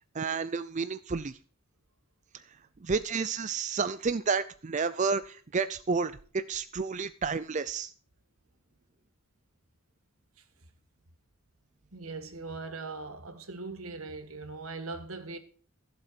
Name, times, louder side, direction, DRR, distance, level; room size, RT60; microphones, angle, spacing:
voice 1, 0.1-1.4 2.8-7.9, right 5 dB, 35° right, 0.5 m, -31 dB
voice 2, 11.9-15.4, right 3 dB, 80° right, 1.8 m, -40 dB
14.5 x 7.9 x 5.9 m
head